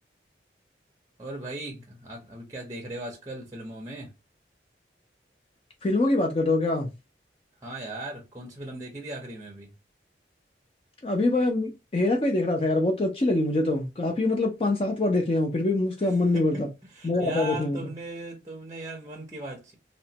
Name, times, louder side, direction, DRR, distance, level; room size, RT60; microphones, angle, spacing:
voice 1, 1.2-4.1 7.6-9.7 16.3-16.6 16.9-19.7, right 1 dB, 20° right, 0.6 m, -38 dB
voice 2, 5.8-6.9 11.0-16.7 17.0-17.8, left 2 dB, 30° left, 0.4 m, -24 dB
2.9 x 2.1 x 2.7 m
head